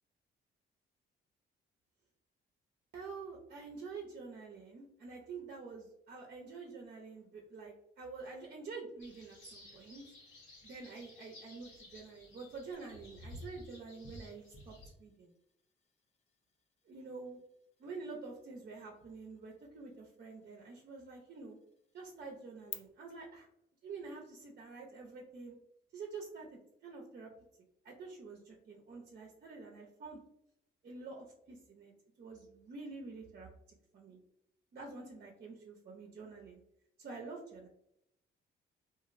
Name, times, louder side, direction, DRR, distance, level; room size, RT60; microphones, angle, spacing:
voice 1, 2.9-10.0 10.6-15.3 16.9-17.4 17.8-21.6 21.9-23.5 23.8-25.5 25.9-27.3 27.8-30.2 30.8-31.9 32.2-33.5 33.9-34.2 34.7-36.6 37.0-37.7, right 4 dB, 50° right, 0 dB, 0.6 m, -48 dB
sound 1, 9.0-14.9, left 1 dB, 85° left, 1.0 m, -54 dB
sound 2, 12.7-22.7, left 7 dB, 35° left, 0.4 m, -57 dB
2.9 x 2.5 x 2.5 m, 0.77 s
cardioid pair, 90°, 20 cm